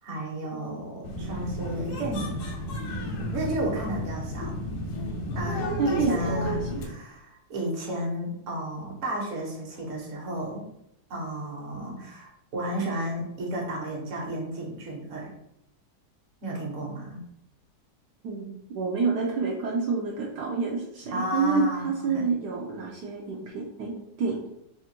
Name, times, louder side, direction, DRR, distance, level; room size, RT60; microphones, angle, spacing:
voice 1, 0.0-2.4 3.2-4.6 5.3-10.6 11.1-15.3 16.4-17.2 21.1-22.2, right 1 dB, 50° right, -2 dB, 1.3 m, -33 dB
voice 2, 0.5-0.9 5.8-6.6 18.2-23.9 24.2-24.4, right 4 dB, 75° right, -2 dB, 1.2 m, -28 dB
sound 1, 1.0-6.9, left 1 dB, 85° left, 1.4 m, -33 dB
3.5 x 2.5 x 4.3 m, 0.79 s
omnidirectional pair, 1.9 m